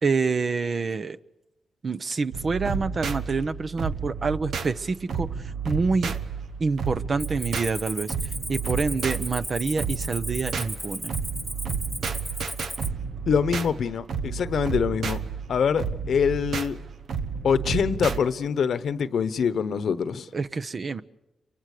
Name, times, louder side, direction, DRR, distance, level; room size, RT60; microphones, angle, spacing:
voice 1, 0.0-1.2 1.8-5.3 5.6-6.2 6.6-8.1 8.5-11.1 20.3-21.0, right 4 dB, 50° right, 1.0 m, -27 dB
sound 1, 2.3-18.2, right 6 dB, 75° right, 1.1 m, -32 dB
Cricket, 7.2-12.9, equal, 5° right, 0.9 m, -36 dB
voice 2, 13.3-15.2 15.5-16.8 17.4-20.3, left 7 dB, 75° left, 1.1 m, -24 dB
29.5 x 24.0 x 6.8 m
cardioid pair, 55°, 0 cm